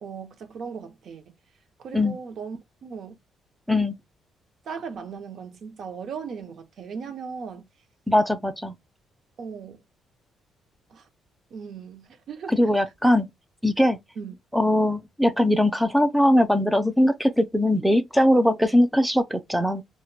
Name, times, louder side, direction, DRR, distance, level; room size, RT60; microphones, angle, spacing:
voice 1, 0.0-1.2 1.8-3.2 4.7-7.7 9.4-9.8 10.9-11.0 11.5-12.5 14.2-14.4, right 6 dB, 55° right, 0.5 m, -37 dB
voice 2, 8.1-8.8 12.5-13.3 13.6-14.0 14.5-19.8, left 1 dB, ahead, 0.4 m, -21 dB
2.1 x 2.1 x 3.0 m
cardioid pair, 140°, 0 cm